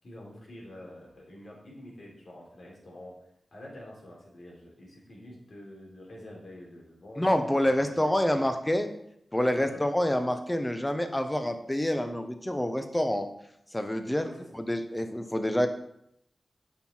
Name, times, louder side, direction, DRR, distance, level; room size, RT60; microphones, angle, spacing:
voice 1, 0.0-3.2 3.5-7.3 7.6-8.5 9.6-9.8 14.2-14.5, left 1 dB, 70° left, -3 dB, 3.7 m, -47 dB
voice 2, 7.2-8.9 9.3-13.3 13.7-14.3 14.5-15.7, left 1 dB, 15° left, 7 dB, 1.1 m, -27 dB
8.9 x 5.8 x 4.7 m, 0.75 s
cardioid pair, 50°, 0 cm